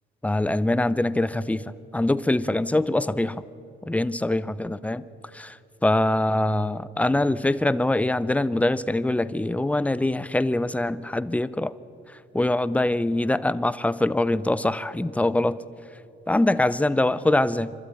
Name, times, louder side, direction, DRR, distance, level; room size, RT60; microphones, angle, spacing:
voice 1, 0.2-1.6 1.9-3.4 3.9-5.0 5.3-5.6 5.8-11.7 12.3-15.6 16.3-17.7, left 1 dB, 5° left, 16 dB, 0.6 m, -23 dB
26.0 x 12.5 x 9.0 m, 2.7 s
cardioid pair, 90°, 20 cm